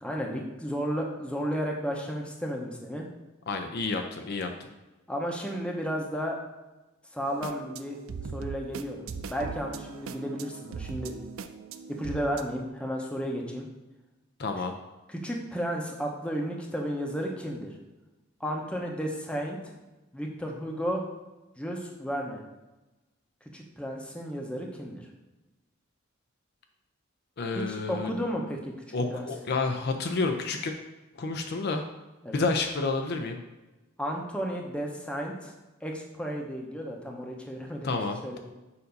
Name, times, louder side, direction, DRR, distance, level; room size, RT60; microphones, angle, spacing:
voice 1, 0.0-3.1 5.1-6.3 7.1-8.0 8.3-11.1 11.9-13.7 15.1-17.7 18.4-19.7 20.1-21.0 21.6-22.4 23.5-25.0 27.6-28.7 29.1-29.3 32.2-32.4 34.0-35.5 35.8-38.0 38.2-38.4, equal, 5° left, 0 dB, 0.8 m, -33 dB
voice 2, 3.5-4.7 14.4-14.7 27.4-28.1 28.9-30.7 31.1-31.8 32.3-33.4 37.8-38.4, left 3 dB, 55° left, 5 dB, 0.5 m, -30 dB
sound 1, 7.2-12.4, right 5 dB, 90° right, 0.4 m, -40 dB
6.9 x 2.6 x 5.2 m, 1.1 s
head